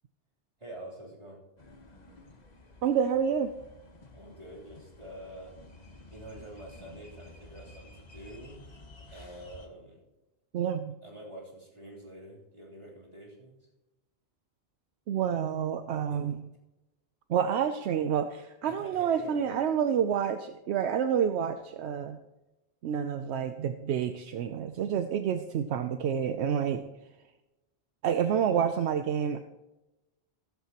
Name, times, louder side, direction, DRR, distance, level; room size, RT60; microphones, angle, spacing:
voice 1, 0.6-1.4 4.1-5.5 6.1-8.8 9.1-10.0 11.0-13.7 16.1-16.2 18.6-19.7 28.2-28.6, right 1 dB, 35° right, -5 dB, 3.4 m, -47 dB
sound 1, 1.6-9.7, left 2 dB, 40° left, 1.5 m, -52 dB
voice 2, 2.8-3.5 10.5-11.0 15.1-16.5 17.3-22.2 22.8-26.8 28.0-29.4, right 8 dB, 80° right, 9 dB, 0.9 m, -28 dB
14.0 x 13.5 x 2.9 m, 1.0 s
omnidirectional pair, 1.1 m